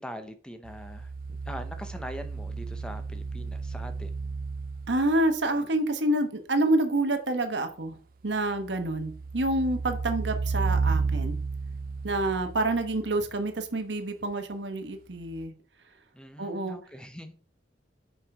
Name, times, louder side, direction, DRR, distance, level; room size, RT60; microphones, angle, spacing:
voice 1, 0.0-4.1 16.1-17.3, equal, 5° left, 8 dB, 0.6 m, -42 dB
sound 1, 0.7-5.3 8.6-13.3 15.4-15.5, right 4 dB, 50° right, 0.4 m, -33 dB
voice 2, 4.9-8.0 8.2-11.4 12.0-15.5 16.4-16.8, right 1 dB, 90° right, 7 dB, 1.2 m, -27 dB
5.6 x 5.4 x 4.8 m, 0.43 s
head